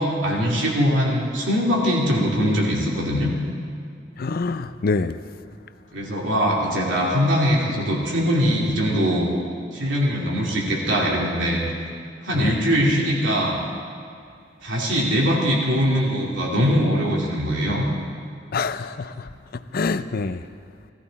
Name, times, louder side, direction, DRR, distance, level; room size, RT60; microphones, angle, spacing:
voice 1, 0.0-3.3 5.9-9.3 9.7-11.6 12.2-13.5 14.6-17.9, equal, 90° right, -3 dB, 2.9 m, -21 dB
voice 2, 4.2-5.2 12.3-12.6 18.5-19.3 19.7-20.4, left 4 dB, 55° left, 12 dB, 0.5 m, -25 dB
17.0 x 14.0 x 4.2 m, 2.4 s
head